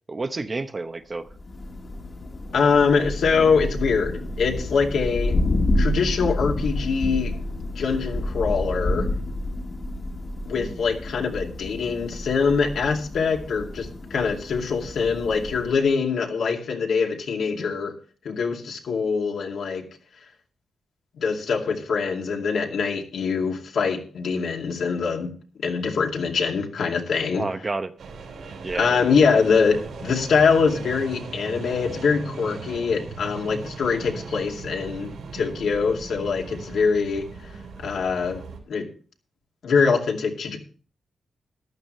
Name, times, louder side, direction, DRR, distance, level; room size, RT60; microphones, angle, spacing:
voice 1, 0.1-1.3 10.5-10.8 27.3-27.9 28.6-29.1, right 3 dB, 25° right, 9 dB, 0.8 m, -30 dB
Thunder, 1.3-15.9, left 1 dB, 35° left, 1.6 m, -29 dB
voice 2, 2.5-5.4 5.8-7.3 7.8-9.1 10.5-17.9 18.2-19.8 21.2-25.3 25.6-27.4 28.7-37.3 37.8-38.4 38.7-38.9 39.6-40.6, left 5 dB, 70° left, 1 dB, 2.5 m, -23 dB
sound 1, 28.0-38.6, right 4 dB, 75° right, 4.0 m, -38 dB
14.5 x 12.0 x 3.2 m, 0.40 s
wide cardioid pair, 145°, 0 cm